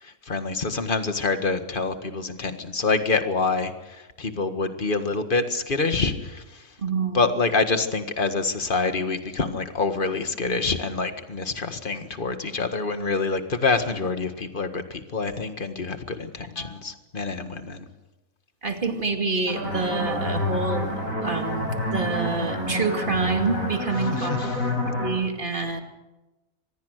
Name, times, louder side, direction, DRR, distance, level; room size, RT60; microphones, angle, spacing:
voice 1, 0.0-6.7 7.1-17.9 24.0-24.7, left 4 dB, 40° left, 8 dB, 1.8 m, -26 dB
voice 2, 6.8-7.2 16.6-16.8 18.6-24.3 24.6-24.7 24.9-25.8, right 3 dB, 35° right, 5 dB, 2.6 m, -27 dB
sound 1, 19.5-25.1, left 1 dB, 75° left, 7.6 m, -28 dB
25.5 x 20.5 x 6.6 m, 1.0 s
omnidirectional pair, 1.5 m